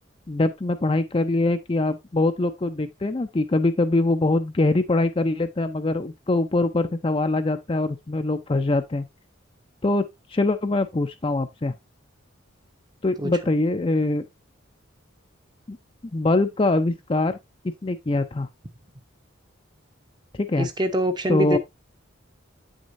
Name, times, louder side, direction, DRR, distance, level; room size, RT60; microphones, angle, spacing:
voice 1, 0.3-9.0 9.8-10.0 10.3-11.7 13.0-14.2 15.7-15.8 16.1-17.4 17.8-18.5 20.4-20.7 21.3-21.6, left 2 dB, 25° left, 0.5 m, -23 dB
voice 2, 20.6-21.6, equal, 20° right, 0.7 m, -24 dB
8.2 x 6.3 x 2.6 m
head